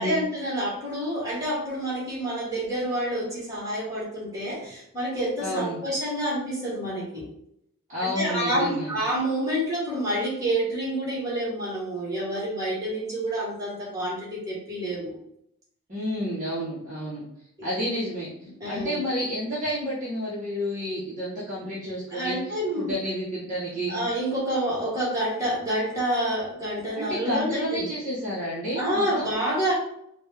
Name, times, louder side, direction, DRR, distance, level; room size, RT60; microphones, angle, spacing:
voice 1, 0.0-7.3 8.0-15.2 17.6-17.7 18.6-19.0 22.1-22.9 23.9-27.9 28.7-29.7, right 1 dB, 15° right, -6 dB, 1.3 m, -28 dB
voice 2, 5.4-5.9 7.9-9.0 15.9-17.2 17.6-18.3 18.6-24.0 26.9-29.3, equal, 35° right, -8 dB, 0.8 m, -30 dB
3.7 x 2.2 x 3.2 m, 0.76 s
head